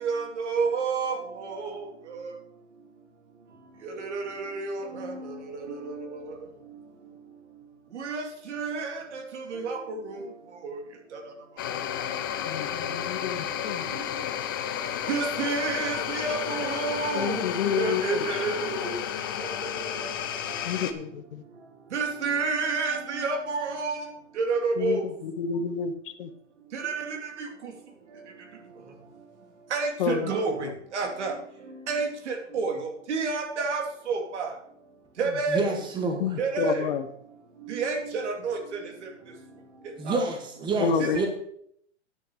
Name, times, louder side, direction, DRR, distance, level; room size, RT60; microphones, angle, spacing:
voice 1, 0.0-1.2 1.5-1.8 4.1-5.1 5.7-6.0 8.0-10.2 10.6-10.8 15.1-17.4 17.8-18.9 21.9-24.0 24.4-25.0 26.7-27.2 29.7-30.5 30.9-31.3 31.9-32.7 33.1-34.5 35.2-35.6 36.4-36.8 37.7-38.6 40.1-40.2, right 4 dB, 65° right, 3 dB, 2.7 m, -29 dB
sound 1, 11.6-20.9, left 9 dB, 20° left, 0.4 m, -32 dB
voice 2, 12.4-13.9 17.1-18.4 20.6-21.4 24.8-25.9 26.2-26.3 30.0-30.3 30.6-30.7 36.2-37.1 40.8-41.3, left 6 dB, 45° left, 10 dB, 1.0 m, -29 dB
voice 3, 35.5-36.2 40.0-41.3, right 3 dB, 10° right, 3 dB, 1.5 m, -28 dB
9.8 x 6.4 x 6.7 m, 0.68 s
hypercardioid pair, 150°, 37 cm